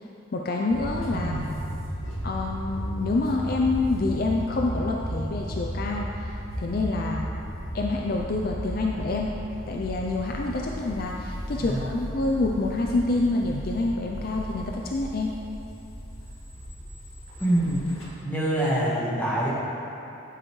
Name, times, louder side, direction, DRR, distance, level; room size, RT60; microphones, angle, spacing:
voice 1, 0.3-1.4 2.2-7.3 7.7-9.4 9.7-15.4, left 2 dB, 45° left, 0 dB, 0.4 m, -27 dB
sound 1, 0.7-18.1, equal, 85° left, 1.8 m, -35 dB
voice 2, 1.1-1.6 11.6-11.9 17.4-17.8 18.2-19.5, right 1 dB, 10° left, -8 dB, 1.4 m, -25 dB
9.2 x 7.6 x 3.1 m, 2.9 s
head